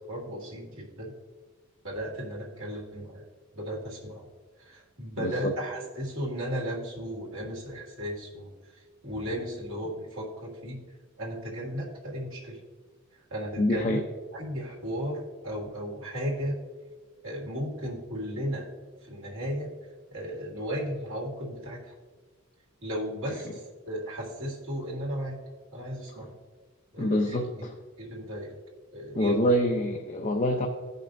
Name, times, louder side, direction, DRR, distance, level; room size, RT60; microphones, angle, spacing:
voice 1, 0.1-1.1 1.8-3.2 3.5-4.3 4.6-10.8 11.2-12.6 13.3-14.0 14.3-16.6 17.2-18.7 19.0-19.7 20.1-22.0 22.8-25.4 25.7-26.3 26.9-27.4 28.0-28.5 28.9-29.5, equal, 65° right, -4 dB, 1.9 m, -35 dB
voice 2, 5.2-5.5 13.6-14.0 23.3-23.5 26.1-26.2 27.0-27.8 29.1-30.7, equal, 35° left, 3 dB, 0.5 m, -26 dB
16.0 x 5.4 x 2.6 m, 1.4 s
head